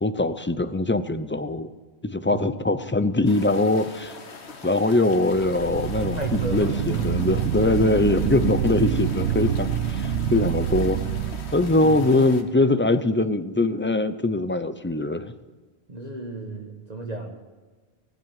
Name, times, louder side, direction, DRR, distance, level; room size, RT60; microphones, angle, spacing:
voice 1, 0.0-1.7 2.0-4.1 4.6-11.0 11.5-15.3, left 2 dB, 15° left, 11 dB, 0.4 m, -22 dB
sound 1, 3.3-12.4, left 4 dB, 75° left, 1.6 m, -42 dB
sound 2, 5.2-12.2, right 9 dB, 80° right, 1.0 m, -27 dB
voice 2, 6.2-7.0 11.8-12.0 15.9-17.3, right 2 dB, 40° right, 1 dB, 1.5 m, -34 dB
18.0 x 8.0 x 9.0 m, 1.4 s
omnidirectional pair, 1.1 m